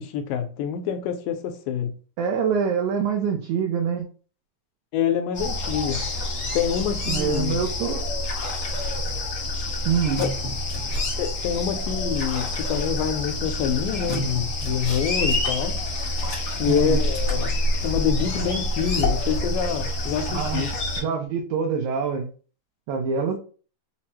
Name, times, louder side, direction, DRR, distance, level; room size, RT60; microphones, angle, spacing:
voice 1, 0.0-1.9 4.9-6.1 6.5-7.6 10.2-10.3 11.2-15.8 16.6-20.7, left 8 dB, 80° left, 2.1 m, -26 dB
voice 2, 2.2-4.1 7.1-8.0 9.9-10.2 16.7-17.0 20.3-20.7 21.0-22.3 22.9-23.4, right 6 dB, 80° right, 1.8 m, -25 dB
sound 1, 5.3-21.0, left 1 dB, 60° left, 1.0 m, -27 dB
5.8 x 2.0 x 2.8 m
omnidirectional pair, 4.0 m